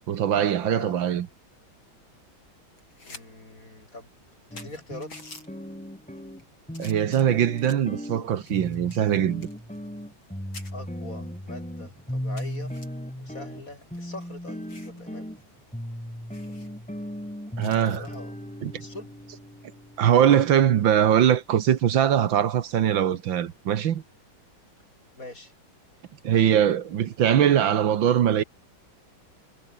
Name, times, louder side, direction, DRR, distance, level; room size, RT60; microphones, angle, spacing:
voice 1, 0.1-1.3 6.8-9.5 17.6-18.1 18.6-18.8 20.0-24.0 26.2-28.4, right 10 dB, 75° right, 1.9 m, -22 dB
voice 2, 0.6-1.0 3.0-4.1 4.5-5.1 10.7-12.7 13.2-15.3 16.4-16.5 17.7-18.3 18.8-19.1 20.0-20.1 25.2-25.5, left 2 dB, 40° left, 6.2 m, -42 dB
sound 1, 2.7-3.2 3.6-3.7 4.2-4.3 4.6-5.5 6.1-6.4 6.7-7.9 8.5-10.3 10.5-10.7 11.3-11.4 11.8-11.9 12.4-12.9 13.7-15.0 15.4-15.5 15.8-15.9 16.3-16.7 17.6-18.2 19.9-20.1, left 3 dB, 80° left, 7.4 m, -48 dB
sound 2, 4.5-20.8, equal, 5° left, 3.0 m, -37 dB
omnidirectional pair, 2.2 m